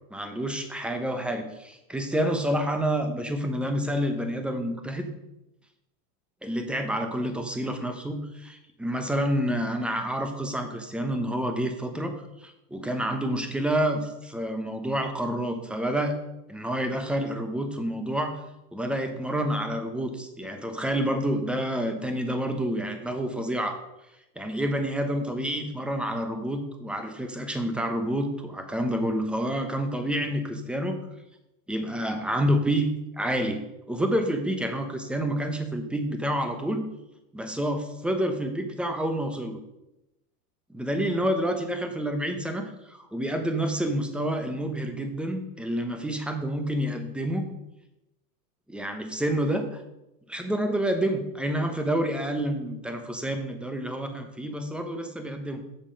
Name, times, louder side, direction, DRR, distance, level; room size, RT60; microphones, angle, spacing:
voice 1, 0.1-5.1 6.4-16.2 16.5-18.4 18.7-23.8 24.4-31.0 31.7-36.9 37.3-39.6 40.7-47.5 48.7-49.8 50.3-55.6, right 1 dB, ahead, 6 dB, 0.9 m, -28 dB
7.2 x 6.7 x 5.3 m, 0.92 s
supercardioid pair, 125°, 46 cm